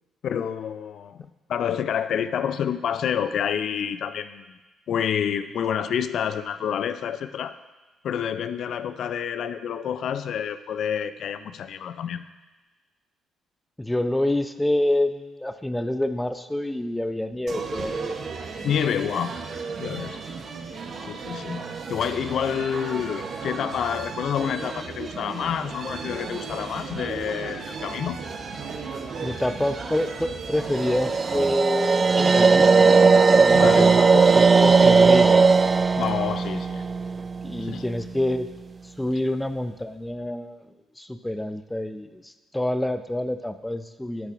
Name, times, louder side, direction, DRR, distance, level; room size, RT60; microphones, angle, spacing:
voice 1, 0.2-1.2 1.5-4.6 4.9-7.5 8.0-12.2 18.6-19.4 19.8-20.2 21.0-28.2 33.5-33.9 36.0-36.8 37.7-37.8, left 8 dB, 65° left, 12 dB, 0.4 m, -28 dB
voice 2, 13.8-18.7 29.2-33.0 33.4-35.4 37.4-38.5 38.8-40.7 41.0-44.3, left 1 dB, 10° left, 10 dB, 0.6 m, -27 dB
sound 1, 17.5-31.5, right 5 dB, 55° right, 0.9 m, -35 dB
sound 2, 30.7-37.8, right 4 dB, 40° right, 0.3 m, -17 dB
13.5 x 6.5 x 2.5 m, 1.2 s
hypercardioid pair, 55°, 0 cm